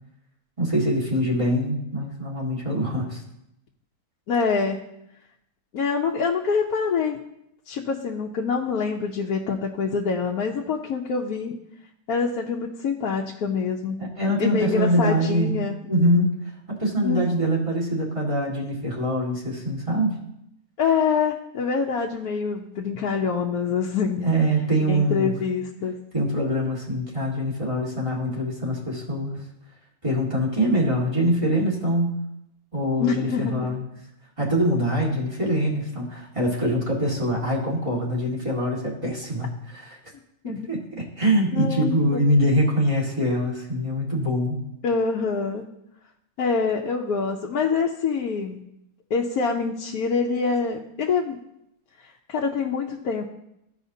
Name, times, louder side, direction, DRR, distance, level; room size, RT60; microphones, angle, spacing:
voice 1, 0.6-3.2 14.0-15.5 15.9-16.4 16.7-20.2 24.2-25.3 26.1-29.4 30.0-32.2 32.7-33.8 34.4-40.0 40.4-44.6, equal, 20° right, -4 dB, 1.8 m, -24 dB
voice 2, 4.3-4.9 5.7-7.2 7.7-11.5 12.1-14.1 14.4-15.7 17.0-17.4 20.8-24.3 24.9-25.9 33.0-33.6 40.4-40.7 41.5-42.2 44.8-45.6 46.4-48.6 49.1-51.4 52.3-53.3, left 5 dB, 85° left, -2 dB, 1.2 m, -25 dB
14.5 x 5.0 x 2.7 m, 0.82 s
omnidirectional pair, 1.5 m